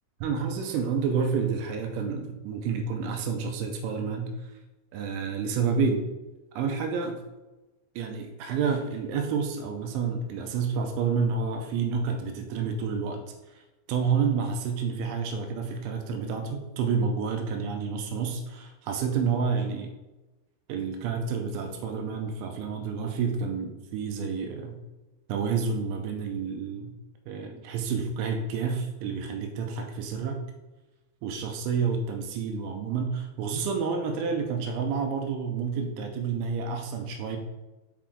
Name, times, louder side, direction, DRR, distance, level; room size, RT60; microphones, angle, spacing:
voice 1, 0.2-4.5 4.9-6.0 6.6-7.2 8.0-13.2 13.9-19.9 20.7-24.8 25.3-27.0 27.3-30.4 31.2-37.4, right 5 dB, 85° right, 4 dB, 2.9 m, -29 dB
7.4 x 5.0 x 3.5 m, 1.1 s
omnidirectional pair, 5.8 m